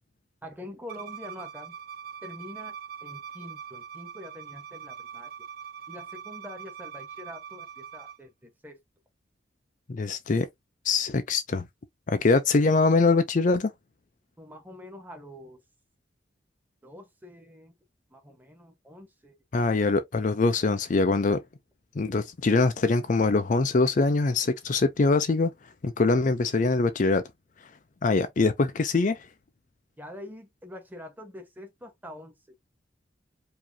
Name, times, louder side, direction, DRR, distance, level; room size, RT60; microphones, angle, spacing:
voice 1, 0.4-1.8 2.2-5.3 5.9-8.8 14.4-15.6 16.8-17.7 18.1-19.3 28.1-28.3 30.0-32.4, left 1 dB, 10° right, 1.2 m, -45 dB
Bowed string instrument, 0.9-8.2, right 7 dB, 55° right, 0.6 m, -42 dB
voice 2, 9.9-10.5 10.8-11.7 12.1-13.7 19.5-21.4 22.0-25.5 25.8-27.2 28.0-29.2, left 3 dB, 45° left, 0.5 m, -23 dB
4.8 x 2.7 x 2.7 m
head